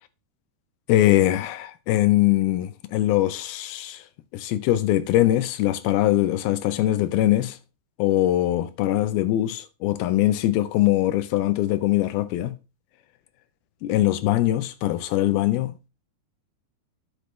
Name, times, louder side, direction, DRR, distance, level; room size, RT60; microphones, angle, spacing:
voice 1, 0.9-4.0 4.3-7.6 8.0-12.6 13.8-15.9, left 14 dB, 80° left, 2.4 m, -22 dB
10.5 x 6.2 x 3.2 m
omnidirectional pair, 4.8 m